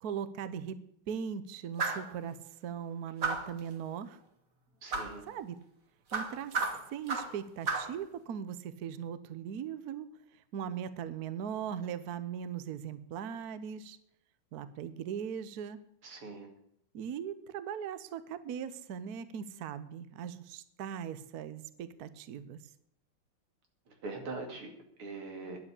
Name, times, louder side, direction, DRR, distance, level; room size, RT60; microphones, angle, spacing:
voice 1, 0.0-0.8 1.1-4.2 5.3-5.6 6.1-14.0 14.5-15.8 16.9-22.6, right 8 dB, 60° right, 14 dB, 1.1 m, -39 dB
sound 1, 1.8-2.1 3.2-3.6 4.9-5.2 6.1-7.4 7.7-8.0, right 4 dB, 40° right, 1.9 m, -33 dB
voice 2, 4.8-5.3 16.0-16.5 24.0-24.7 25.0-25.6, right 3 dB, 90° right, 3 dB, 3.3 m, -41 dB
11.0 x 7.7 x 9.8 m, 0.73 s
omnidirectional pair, 2.4 m